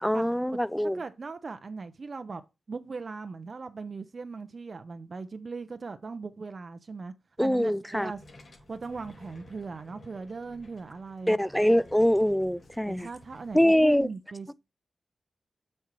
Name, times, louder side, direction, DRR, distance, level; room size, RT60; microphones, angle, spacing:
voice 1, 0.0-1.0 7.4-8.1 11.3-13.1 13.5-14.1, equal, 5° left, 0.4 m, -24 dB
voice 2, 0.9-2.4 2.7-8.2 8.7-11.4 12.9-14.5, right 4 dB, 55° right, 0.6 m, -39 dB
sound 1, 8.0-14.0, left 2 dB, 60° left, 2.6 m, -54 dB
7.5 x 4.4 x 4.5 m
cardioid pair, 60°, 0 cm